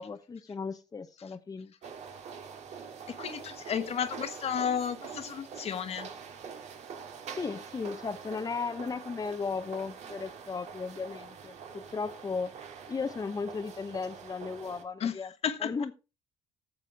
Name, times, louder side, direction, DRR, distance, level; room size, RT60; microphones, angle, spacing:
voice 1, 0.0-1.7 3.8-3.9 7.4-12.5 12.9-15.3 15.6-15.9, left 4 dB, 30° left, 0.9 m, -36 dB
sound 1, 1.8-14.8, right 6 dB, 60° right, 1.9 m, -45 dB
voice 2, 3.1-6.1 15.0-15.1 15.4-15.7, left 8 dB, 55° left, 1.3 m, -32 dB
15.0 x 6.8 x 3.5 m
supercardioid pair, 80°, 13 cm